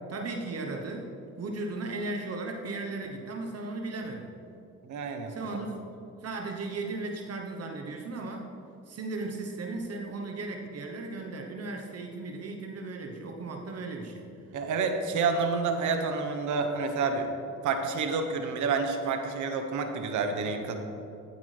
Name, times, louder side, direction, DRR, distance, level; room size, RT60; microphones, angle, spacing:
voice 1, 0.1-1.1 1.4-4.4 5.3-5.9 6.2-8.5 8.9-14.3, right 2 dB, 55° right, 2 dB, 1.1 m, -36 dB
voice 2, 4.8-5.3 14.5-17.3 17.6-20.8, right 4 dB, 75° right, 5 dB, 1.1 m, -29 dB
12.5 x 8.4 x 3.4 m, 2.7 s
cardioid pair, 90°, 30 cm